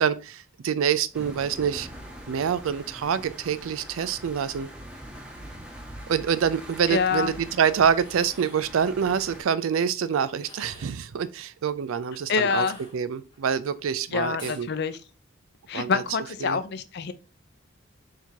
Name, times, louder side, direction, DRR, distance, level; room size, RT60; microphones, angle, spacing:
voice 1, 0.0-1.9 2.3-4.7 6.1-12.7 12.9-14.7 15.7-16.0 16.4-16.6, right 7 dB, 80° right, 0.4 m, -26 dB
sound 1, 1.1-9.4, equal, 5° right, 1.1 m, -43 dB
voice 2, 6.9-7.3 12.3-12.8 14.1-15.0 15.7-17.1, left 5 dB, 50° left, 0.4 m, -26 dB
sound 2, 8.0-8.7 10.3-11.1 12.5-13.4 14.4-14.7, left 2 dB, 20° left, 1.1 m, -47 dB
4.5 x 3.7 x 2.7 m
head